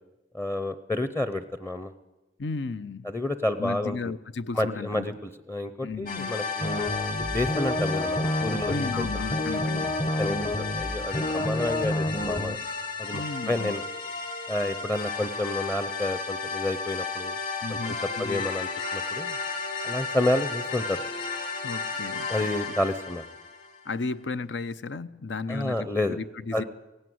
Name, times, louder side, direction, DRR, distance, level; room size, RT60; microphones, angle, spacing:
voice 1, 0.3-1.9 3.0-4.0 4.5-6.8 7.2-9.1 10.2-12.6 13.0-13.8 14.5-17.4 17.7-19.4 19.8-21.0 22.3-23.2 25.5-26.2 26.5-26.6, left 1 dB, 15° left, 0.7 m, -30 dB
voice 2, 2.4-3.1 3.6-5.1 5.8-6.4 8.7-10.0 13.1-13.8 17.6-18.5 21.6-22.5 23.8-26.6, left 3 dB, 75° left, 0.7 m, -34 dB
sound 1, 6.1-23.9, left 4 dB, 50° left, 2.9 m, -33 dB
sound 2, 6.6-12.6, left 1 dB, 35° left, 1.0 m, -29 dB
17.5 x 16.5 x 9.4 m
head